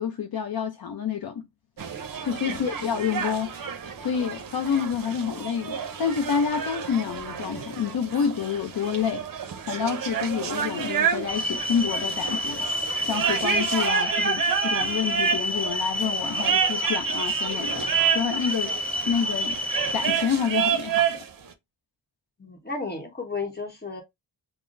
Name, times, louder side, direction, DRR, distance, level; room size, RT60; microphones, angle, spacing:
voice 1, 0.0-1.4 2.2-9.3 9.7-12.7 13.0-17.8 18.1-18.8 19.0-19.6 19.9-21.2, left 7 dB, 55° left, 0.5 m, -28 dB
sound 1, 1.8-21.3, right 7 dB, 50° right, 0.6 m, -29 dB
sound 2, 11.3-20.1, left 1 dB, 5° left, 0.4 m, -29 dB
voice 2, 22.4-24.0, left 4 dB, 20° left, 1.1 m, -33 dB
5.7 x 2.1 x 2.5 m
wide cardioid pair, 120°, 44 cm